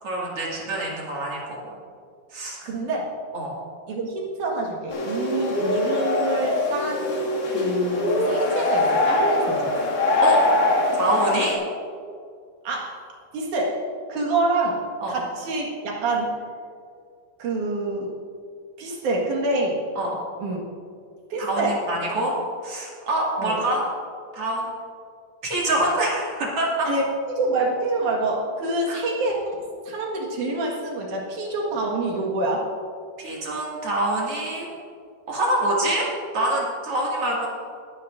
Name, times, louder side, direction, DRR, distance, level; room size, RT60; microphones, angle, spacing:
voice 1, 0.0-1.6 2.3-2.6 3.3-3.5 10.2-10.4 11.0-11.6 15.0-15.1 20.0-20.2 21.4-22.3 22.6-23.8 24.3-24.7 25.4-26.9 28.9-29.0 33.2-34.7 35.3-36.1 36.3-37.5, right 1 dB, 45° right, -4 dB, 2.9 m, -25 dB
voice 2, 2.6-3.0 3.9-7.2 7.5-9.8 12.6-13.0 13.3-13.8 14.1-14.8 15.1-16.4 17.4-18.1 18.8-19.8 20.4-20.6 21.3-21.8 23.4-23.6 26.8-29.6 29.9-32.7, right 2 dB, 65° right, -1 dB, 3.0 m, -26 dB
sound 1, 4.9-11.5, left 2 dB, 60° left, 3.6 m, -23 dB
21.5 x 9.6 x 2.6 m, 2.2 s
omnidirectional pair, 4.1 m